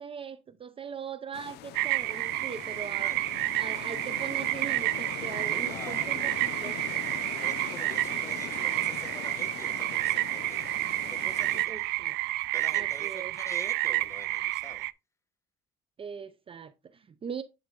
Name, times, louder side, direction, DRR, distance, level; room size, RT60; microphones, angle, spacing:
voice 1, 0.0-3.2 3.5-6.8 11.5-12.2 12.7-13.4 16.0-17.4, right 6 dB, 30° right, 0.6 m, -40 dB
sound 1, 1.3-11.7, left 14 dB, 75° left, 0.5 m, -42 dB
sound 2, 1.7-14.9, right 19 dB, 90° right, 0.4 m, -30 dB
voice 2, 5.6-6.4 7.4-10.7 11.0-11.9 12.5-14.8, left 2 dB, 15° left, 1.3 m, -47 dB
10.5 x 3.9 x 3.7 m
cardioid pair, 110°, 17 cm